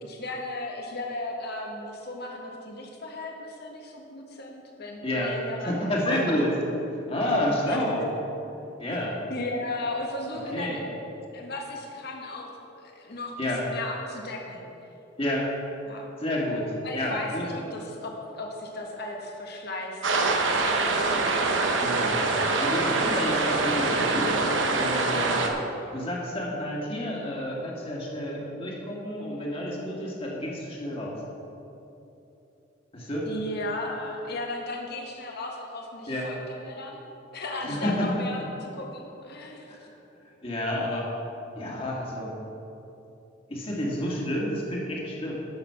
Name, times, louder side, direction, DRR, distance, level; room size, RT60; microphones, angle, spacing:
voice 1, 0.0-5.7 6.1-6.4 7.7-8.1 9.3-10.8 11.3-14.6 15.9-16.1 16.8-21.5 33.3-37.1 37.3-39.7, left 2 dB, 60° left, 1 dB, 1.5 m, -36 dB
voice 2, 5.0-5.3 5.6-6.5 6.9-8.0 8.8-9.2 10.5-10.8 13.4-13.6 15.2-15.5 16.2-17.4 21.8-22.2 22.6-24.3 24.7-25.4 25.9-31.2 32.9-33.3 36.1-36.3 37.6-38.1 39.7-39.9 40.4-41.1 41.6-42.3 43.5-45.3, left 1 dB, 30° left, -3 dB, 2.0 m, -29 dB
sound 1, 20.0-25.5, right 3 dB, 80° right, 1.0 m, -24 dB
11.0 x 6.6 x 5.8 m, 2.9 s
head